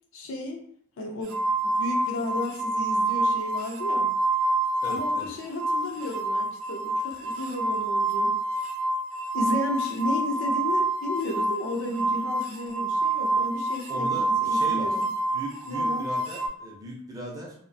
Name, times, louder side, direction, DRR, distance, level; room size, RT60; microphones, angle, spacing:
voice 1, 0.1-0.6 1.0-1.4 1.6-4.1 4.9-8.3 9.3-15.0 15.7-16.0, left 1 dB, 65° left, 2 dB, 0.4 m, -33 dB
sound 1, 1.3-5.3 5.5-16.5, right 2 dB, 70° right, 0.4 m, -27 dB
voice 2, 4.8-5.3 13.9-14.9 15.3-17.5, right 1 dB, 15° right, -3 dB, 0.5 m, -38 dB
2.4 x 2.1 x 2.6 m, 0.64 s
head